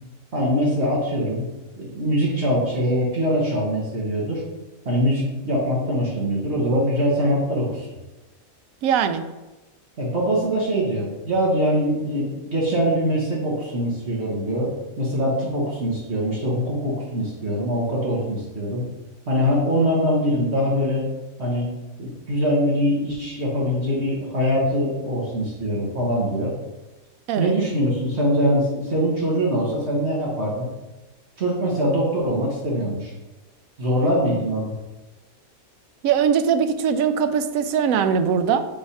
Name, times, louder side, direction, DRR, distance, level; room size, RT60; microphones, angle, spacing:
voice 1, 0.3-1.5 1.7-4.4 4.8-7.9 10.0-14.7 15.0-18.9 19.3-21.0 21.4-21.7 22.0-26.5 27.4-30.7 31.4-33.1 33.8-34.7, equal, 50° right, -5 dB, 1.5 m, -23 dB
voice 2, 8.8-9.2 27.3-27.5 36.0-38.7, right 7 dB, 80° right, 9 dB, 1.0 m, -21 dB
5.5 x 3.4 x 5.5 m, 1.1 s
omnidirectional pair, 1.5 m